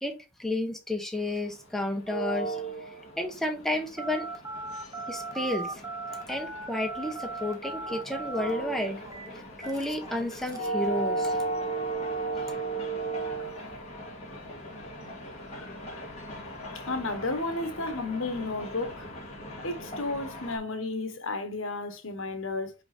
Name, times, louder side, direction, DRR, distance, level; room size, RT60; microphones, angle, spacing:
voice 1, 0.0-2.6 3.2-4.3 5.1-5.7 6.3-9.0 9.6-11.3, left 1 dB, ahead, 1.0 m, -31 dB
sound 1, 1.1-20.6, right 2 dB, 30° left, 2.8 m, -37 dB
Telephone, 4.0-10.8, right 3 dB, 15° right, 1.2 m, -38 dB
voice 2, 16.7-19.1 19.6-22.7, left 2 dB, 65° left, 1.3 m, -33 dB
5.7 x 5.1 x 4.2 m
head